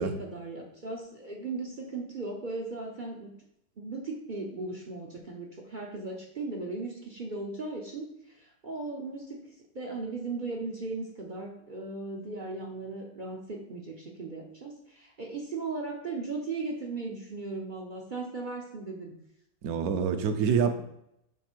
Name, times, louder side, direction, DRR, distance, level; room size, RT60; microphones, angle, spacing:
voice 1, 0.0-3.3 3.8-9.4 9.7-19.2, right 3 dB, 45° right, 0 dB, 0.6 m, -37 dB
voice 2, 19.6-20.8, right 6 dB, 65° right, 8 dB, 1.1 m, -26 dB
5.9 x 4.1 x 4.5 m, 0.78 s
omnidirectional pair, 1.9 m